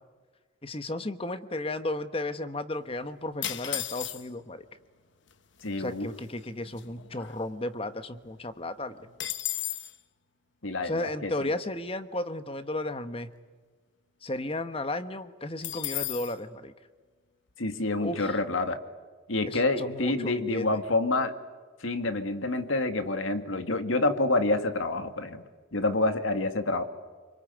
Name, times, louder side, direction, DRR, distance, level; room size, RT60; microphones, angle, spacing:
voice 1, 0.6-4.6 5.8-9.1 10.8-13.3 14.2-16.7 18.0-18.4 19.4-20.8, left 1 dB, 30° left, 11 dB, 1.1 m, -34 dB
sound 1, 3.4-4.5 5.3-5.4 5.6-5.9 6.4-7.8 8.2-8.3 8.6-10.0 15.6-16.4, left 12 dB, 65° left, 1.1 m, -35 dB
voice 2, 5.6-6.1 10.6-11.5 17.6-18.8 19.3-21.3 21.8-25.4 25.7-26.8, left 2 dB, 80° left, 8 dB, 2.1 m, -28 dB
26.0 x 24.0 x 9.4 m, 1.4 s
head